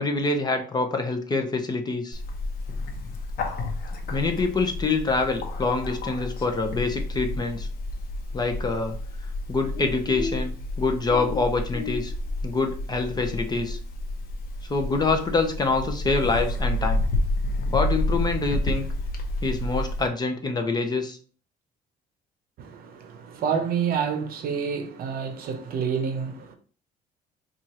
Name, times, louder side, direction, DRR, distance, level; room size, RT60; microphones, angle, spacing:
voice 1, 0.0-2.2 4.1-7.7 8.3-9.0 9.5-12.1 12.4-13.8 14.7-17.1 17.7-18.9 19.4-21.2, left 3 dB, 25° left, 0.6 m, -26 dB
Bird, 2.1-20.1, left 1 dB, 60° left, 0.9 m, -30 dB
voice 2, 22.6-26.5, right 6 dB, 60° right, 0.7 m, -28 dB
4.5 x 2.4 x 2.9 m
cardioid pair, 110°, 17 cm